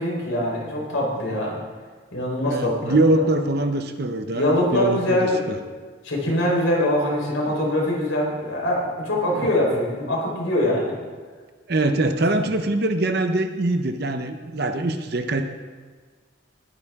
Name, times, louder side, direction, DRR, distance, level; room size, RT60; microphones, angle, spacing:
voice 1, 0.0-1.6 2.1-3.0 4.3-5.4 6.0-10.9, left 1 dB, 85° left, -3 dB, 4.3 m, -23 dB
voice 2, 2.4-5.6 11.7-15.4, right 2 dB, 50° right, 7 dB, 0.8 m, -23 dB
20.5 x 9.8 x 3.7 m, 1.5 s
head